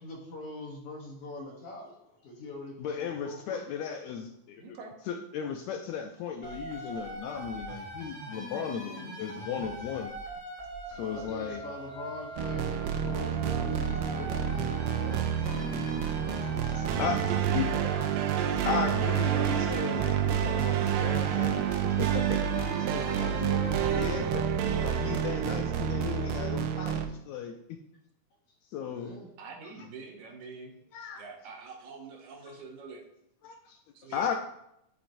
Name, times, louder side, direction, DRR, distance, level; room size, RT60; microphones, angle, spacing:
voice 1, 0.0-3.6 6.9-7.1 8.3-8.4 11.0-15.8 16.2-16.7 17.5-18.5 22.1-24.8 28.5-28.6 28.9-29.3, left 2 dB, 65° left, -1 dB, 1.7 m, -43 dB
voice 2, 2.8-4.6 5.1-10.1 10.9-11.6 16.7-17.9 18.6-22.4 23.9-24.4 24.8-27.8 28.7-29.1 30.9-31.2 33.4-34.3, left 7 dB, 85° left, 4 dB, 1.6 m, -36 dB
voice 3, 4.6-5.0 25.0-25.2 29.4-30.8 31.2-33.0 33.9-34.3, right 4 dB, 70° right, 2 dB, 2.2 m, -45 dB
sound 1, 6.4-24.1, right 1 dB, 45° right, 0.4 m, -42 dB
sound 2, 12.4-27.1, right 9 dB, 90° right, 2.2 m, -29 dB
10.5 x 5.0 x 2.6 m, 0.79 s
omnidirectional pair, 3.7 m